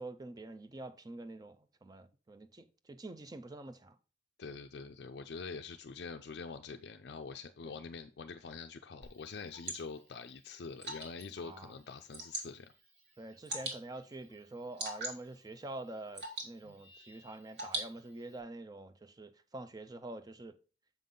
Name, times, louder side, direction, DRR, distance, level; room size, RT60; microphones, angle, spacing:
voice 1, 0.0-4.0 7.6-7.7 11.4-11.8 13.2-20.6, right 2 dB, 20° right, 0.4 m, -46 dB
voice 2, 4.4-12.7, left 5 dB, 60° left, 0.4 m, -45 dB
Water / Drip, 9.0-18.4, right 2 dB, 65° right, 2.3 m, -45 dB
7.3 x 5.5 x 3.7 m
head